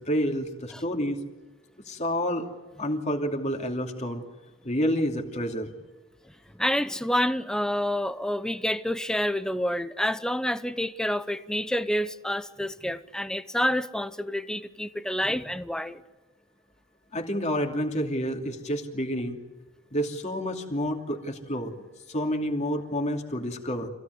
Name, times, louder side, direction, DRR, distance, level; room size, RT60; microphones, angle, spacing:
voice 1, 0.1-1.2 1.9-2.5 2.8-4.2 4.6-5.7 17.1-19.4 19.9-21.7 22.1-23.9, equal, 35° left, 2.8 m, -29 dB
voice 2, 6.5-16.0, equal, 5° left, 0.7 m, -28 dB
26.0 x 16.5 x 9.5 m
head